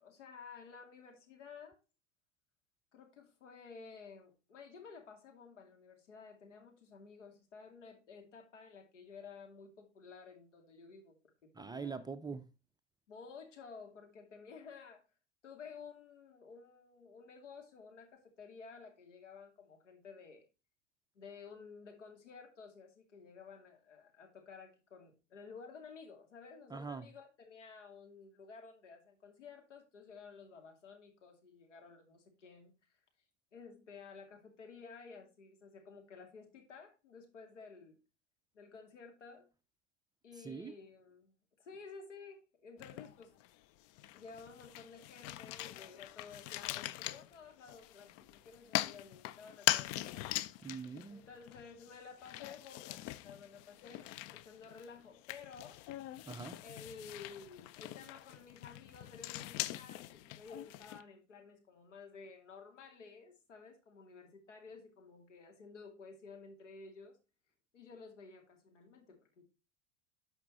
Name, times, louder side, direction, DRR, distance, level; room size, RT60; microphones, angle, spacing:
voice 1, 0.0-1.8 2.9-12.0 13.1-15.0 15.4-20.5 21.1-33.0 33.5-38.0 38.5-39.5 40.2-43.3 44.1-50.2 51.1-55.8 56.6-67.2 67.7-69.4, left 5 dB, 75° left, 2.5 m, -53 dB
voice 2, 11.5-12.4 26.7-27.1 40.4-40.7 50.6-51.2 56.3-56.6, right 5 dB, 10° right, 0.5 m, -43 dB
sound 1, 42.8-43.5 43.9-61.0, left 16 dB, 45° left, 0.5 m, -42 dB
11.5 x 5.6 x 2.9 m
figure-of-eight pair, 80°, 36 cm